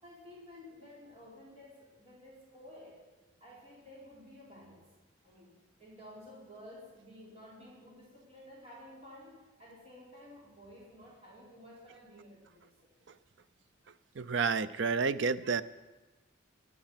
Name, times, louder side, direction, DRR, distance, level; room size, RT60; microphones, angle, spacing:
voice 1, 0.0-3.0 3.4-4.8 5.2-12.6, left 1 dB, 30° right, -6 dB, 4.7 m, -53 dB
voice 2, 14.2-15.6, right 5 dB, 65° right, 14 dB, 0.6 m, -30 dB
22.0 x 10.0 x 5.9 m, 1.2 s
head